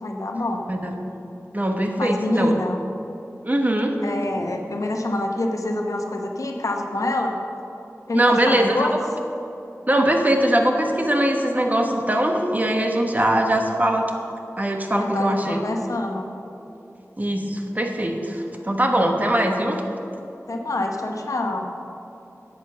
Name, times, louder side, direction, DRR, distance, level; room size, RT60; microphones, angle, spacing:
voice 1, 0.0-0.7 2.0-2.8 4.0-7.4 8.1-8.9 15.0-16.3 20.5-21.7, left 2 dB, 75° left, 3 dB, 1.0 m, -26 dB
voice 2, 1.5-2.5 3.4-4.0 8.1-9.0 9.9-14.1 14.6-15.6 17.2-19.8, right 1 dB, 30° right, 3 dB, 1.2 m, -21 dB
9.3 x 8.1 x 6.9 m, 2.8 s
wide cardioid pair, 50°, 6 cm